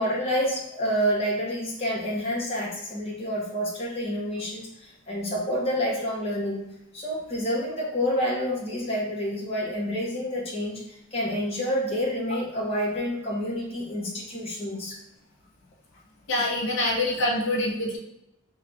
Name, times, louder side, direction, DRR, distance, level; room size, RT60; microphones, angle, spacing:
voice 1, 0.0-6.7 6.9-15.0, equal, 30° left, -4 dB, 0.8 m, -28 dB
voice 2, 16.3-18.0, left 1 dB, 70° left, -2 dB, 0.7 m, -25 dB
3.3 x 2.3 x 3.8 m, 0.83 s
head